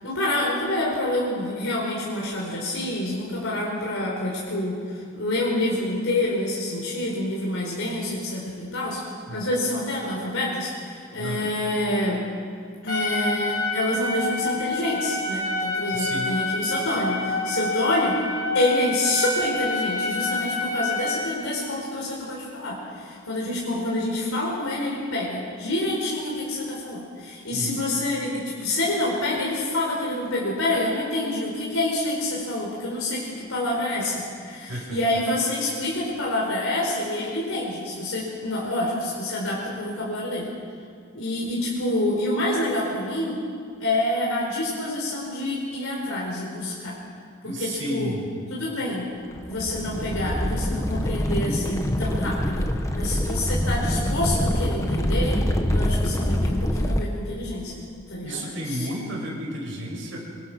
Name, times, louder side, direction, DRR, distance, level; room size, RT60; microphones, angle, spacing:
voice 1, 0.0-9.0 9.3-12.2 12.8-18.2 18.5-40.5 41.1-43.4 43.8-47.0 47.4-48.1 48.5-49.0 49.5-52.7 52.9-55.4 55.7-58.9, left 1 dB, 90° left, -4 dB, 4.5 m, -27 dB
voice 2, 11.2-11.5 15.9-16.4 27.5-27.8 34.7-35.0 47.4-48.3 58.2-60.2, equal, 70° right, -1 dB, 6.4 m, -32 dB
Trumpet, 12.9-21.3, left 2 dB, 50° left, 5.1 m, -27 dB
sound 1, 49.3-57.0, equal, 15° left, 1.4 m, -25 dB
26.0 x 22.5 x 6.2 m, 2.1 s
head